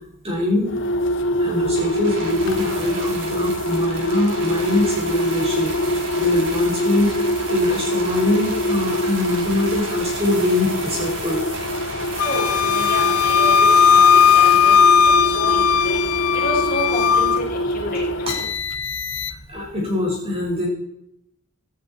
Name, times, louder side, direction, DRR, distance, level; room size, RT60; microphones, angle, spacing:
voice 1, 0.2-0.7 1.4-7.1 7.5-11.4 19.5-20.7, left 2 dB, 25° right, -1 dB, 5.2 m, -23 dB
sound 1, 0.6-19.6, equal, 55° left, 1.1 m, -25 dB
sound 2, 1.8-15.4 16.2-16.3, right 3 dB, 55° right, 3.6 m, -34 dB
Wind instrument woodwind instrument, 12.2-17.4, left 7 dB, 75° left, 0.7 m, -16 dB
voice 2, 12.2-14.7 15.0-16.0 16.3-17.3 17.7-18.0, left 1 dB, 40° left, -3 dB, 6.3 m, -29 dB
17.0 x 14.5 x 4.4 m, 0.78 s
head